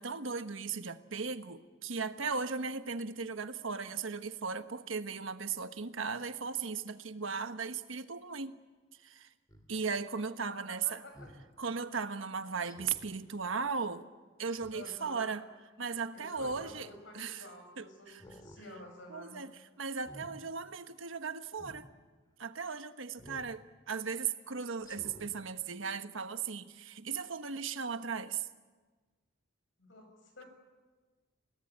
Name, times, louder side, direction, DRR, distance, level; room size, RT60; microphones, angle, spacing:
voice 1, 0.0-8.5 9.0-9.3 9.7-11.0 11.6-14.0 14.4-15.4 15.8-16.9 17.1-17.4 17.8-17.9 19.1-19.5 19.8-21.9 22.4-28.5, right 5 dB, 85° right, 9 dB, 1.3 m, -37 dB
Speech synthesizer, 9.5-9.7 11.1-11.4 12.6-13.1 14.5-14.9 16.2-16.8 17.2-17.3 18.1-18.6 19.0-19.3 19.9-20.3 21.5-21.8 23.2-23.5 24.0-24.1 24.8-25.3 25.8-25.9, equal, 20° left, 2.7 m, -53 dB
voice 2, 10.7-11.3 14.7-15.4 16.1-19.4 29.8-30.5, left 1 dB, 70° left, 4 dB, 7.5 m, -51 dB
29.0 x 18.5 x 8.8 m, 1.3 s
head